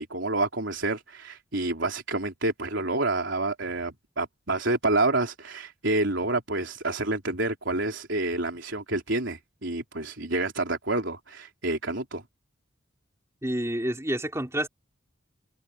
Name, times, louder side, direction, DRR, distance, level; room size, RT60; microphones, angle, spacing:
voice 1, 0.0-12.2, right 2 dB, 65° right, 3.9 m, -28 dB
voice 2, 13.4-14.7, right 1 dB, 15° right, 3.7 m, -28 dB
head